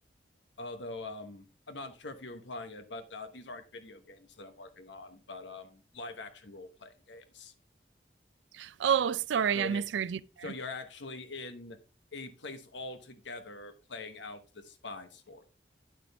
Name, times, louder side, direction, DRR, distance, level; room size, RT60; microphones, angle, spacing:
voice 1, 0.6-7.5 9.5-9.8 10.4-11.8 12.1-15.4, left 2 dB, 85° left, 1.1 m, -43 dB
voice 2, 8.5-10.5, right 8 dB, 85° right, 0.4 m, -29 dB
9.1 x 6.1 x 3.4 m
head